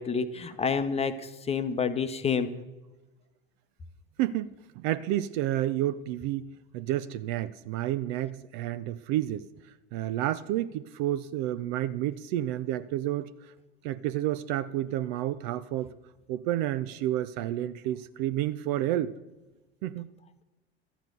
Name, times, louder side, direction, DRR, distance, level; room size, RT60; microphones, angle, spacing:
voice 1, 0.0-2.5, left 6 dB, 20° left, 10 dB, 0.9 m, -29 dB
voice 2, 4.2-9.5 9.9-13.3 13.8-15.9 16.3-19.1 19.8-20.1, right 13 dB, 45° right, 15 dB, 0.5 m, -30 dB
13.0 x 8.9 x 6.7 m, 1.1 s
figure-of-eight pair, 75°, 32 cm